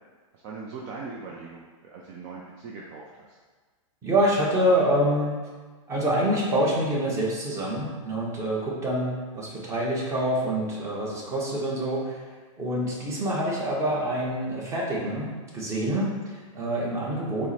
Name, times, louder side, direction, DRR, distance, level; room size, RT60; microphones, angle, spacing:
voice 1, 0.4-3.4, right 4 dB, 40° right, -3 dB, 0.5 m, -40 dB
voice 2, 4.0-5.4 5.9-12.2 12.6-17.5, right 1 dB, 15° right, -4 dB, 0.9 m, -26 dB
4.5 x 2.1 x 4.1 m, 1.4 s
hypercardioid pair, 140°, 17 cm